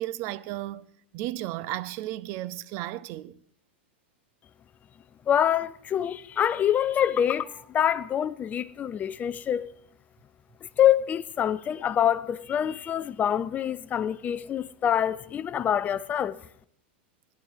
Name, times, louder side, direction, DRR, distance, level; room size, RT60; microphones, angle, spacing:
voice 1, 0.0-3.4, right 15 dB, 45° right, 0.7 m, -34 dB
voice 2, 5.3-9.7 10.8-16.5, left 10 dB, 25° left, 0.6 m, -25 dB
18.0 x 10.5 x 4.8 m
hypercardioid pair, 120°, 6 cm